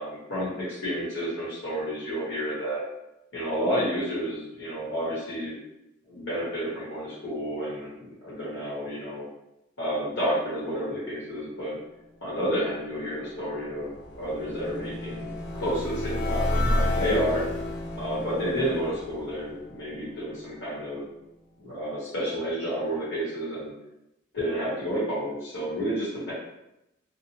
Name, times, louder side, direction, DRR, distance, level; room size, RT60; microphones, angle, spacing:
voice 1, 0.0-2.8 3.3-5.6 6.1-9.2 9.8-11.8 12.2-17.4 18.0-21.0 21.6-23.7 24.3-26.3, equal, 75° left, -10 dB, 1.1 m, -30 dB
sound 1, 13.1-20.3, left 1 dB, 55° left, 0.8 m, -31 dB
3.0 x 2.1 x 2.8 m, 0.88 s
head